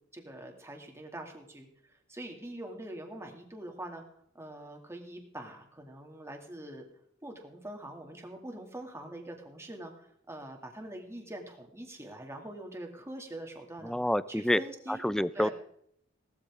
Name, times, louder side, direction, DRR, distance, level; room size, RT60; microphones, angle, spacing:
voice 1, 0.1-4.0 4.3-6.8 7.2-14.0 14.3-15.0 15.3-15.5, right 1 dB, 15° right, 2 dB, 2.5 m, -44 dB
voice 2, 13.8-14.6 15.0-15.5, equal, 5° left, 16 dB, 0.4 m, -27 dB
18.0 x 13.5 x 3.7 m, 0.67 s
head